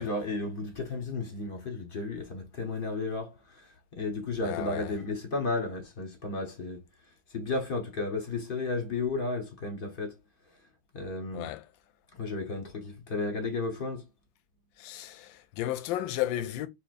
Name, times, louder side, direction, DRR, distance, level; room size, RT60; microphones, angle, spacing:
voice 1, 0.0-3.7 3.9-6.8 7.3-10.1 10.9-11.5 12.2-14.0, left 3 dB, 45° left, 0.8 m, -33 dB
voice 2, 4.4-5.0 11.3-11.7 14.8-16.7, left 13 dB, 85° left, 1.3 m, -33 dB
5.7 x 2.3 x 2.5 m
omnidirectional pair, 2.0 m